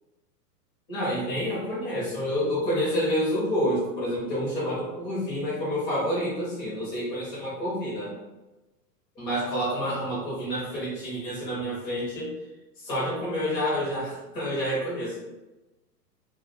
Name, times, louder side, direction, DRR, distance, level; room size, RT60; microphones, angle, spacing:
voice 1, 0.9-8.1 9.2-12.3 12.8-15.2, equal, 10° left, -7 dB, 0.4 m, -28 dB
2.1 x 2.1 x 2.8 m, 1.0 s
hypercardioid pair, 120°, 50 cm